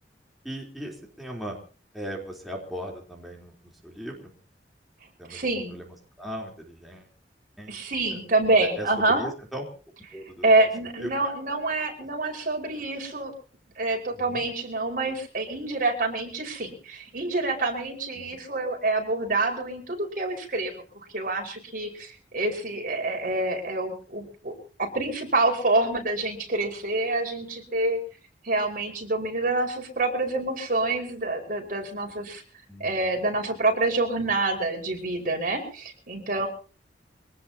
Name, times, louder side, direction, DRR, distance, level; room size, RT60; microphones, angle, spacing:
voice 1, 0.4-1.6 1.9-4.3 5.2-7.1 7.6-7.8 8.1-8.2 8.6-9.6 10.1-10.5 11.0-11.2 14.1-14.4 18.1-18.4 32.7-33.1, equal, ahead, -1 dB, 3.7 m, -38 dB
voice 2, 5.3-5.8 7.7-9.2 10.4-13.3 13.8-24.5 24.8-28.0 28.4-32.4 32.8-36.5, right 2 dB, 50° right, 2 dB, 5.2 m, -27 dB
24.5 x 18.5 x 2.9 m, 0.37 s
head